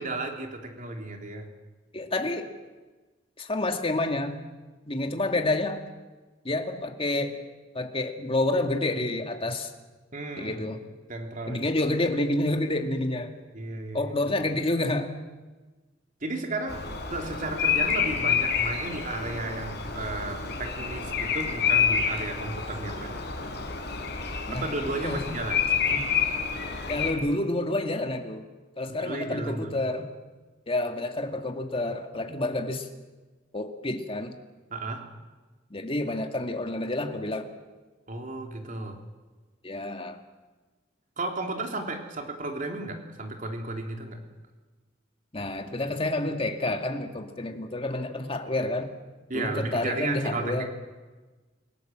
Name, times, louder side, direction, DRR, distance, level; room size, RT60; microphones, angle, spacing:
voice 1, 0.0-1.5 10.1-10.7 11.1-11.7 13.5-14.1 16.2-16.8 17.1-23.2 24.5-25.6 29.0-29.7 34.7-35.0 38.1-39.0 41.2-44.2 49.3-50.7, right 2 dB, 45° right, 3 dB, 3.3 m, -34 dB
voice 2, 1.9-2.5 3.4-4.4 4.9-5.8 6.4-7.4 7.7-9.7 10.4-10.8 11.5-13.3 13.9-15.1 24.5-24.7 25.0-25.2 25.9-26.1 26.9-28.4 28.8-30.1 30.7-32.9 33.5-34.3 35.7-37.5 39.6-40.2 45.3-48.9 49.3-50.7, left 2 dB, 30° left, 5 dB, 2.1 m, -29 dB
Bird vocalization bird call bird song, 16.7-27.1, left 6 dB, 60° left, 4.8 m, -28 dB
29.0 x 17.5 x 7.7 m, 1.3 s
head